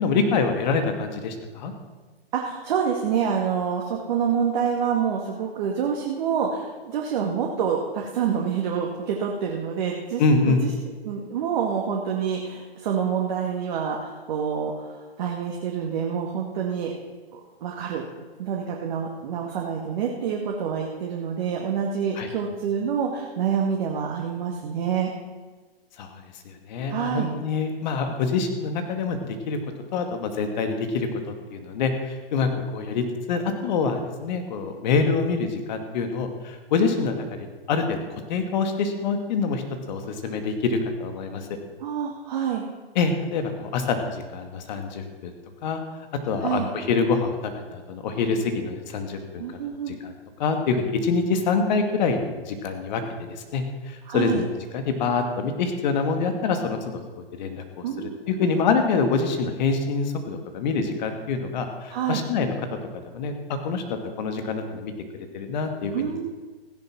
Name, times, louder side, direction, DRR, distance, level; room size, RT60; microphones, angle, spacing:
voice 1, 0.0-1.7 10.2-10.6 22.2-22.3 26.0-29.2 29.5-29.6 29.9-31.1 31.5-38.0 38.3-39.6 39.9-41.5 43.0-45.3 45.6-45.8 46.3-49.5 49.9-50.1 50.4-54.4 54.7-57.0 57.3-62.5 63.1-64.9 65.3-66.1, left 4 dB, 45° left, 6 dB, 2.3 m, -26 dB
voice 2, 2.3-10.7 11.0-16.9 17.3-18.0 18.4-25.1 26.9-27.3 41.8-42.7 46.4-46.7 49.4-50.0 54.1-54.4 57.8-58.5 61.9-62.2 65.9-66.3, right 7 dB, 45° right, -1 dB, 2.0 m, -27 dB
15.5 x 10.5 x 6.1 m, 1.3 s
hypercardioid pair, 130°, 31 cm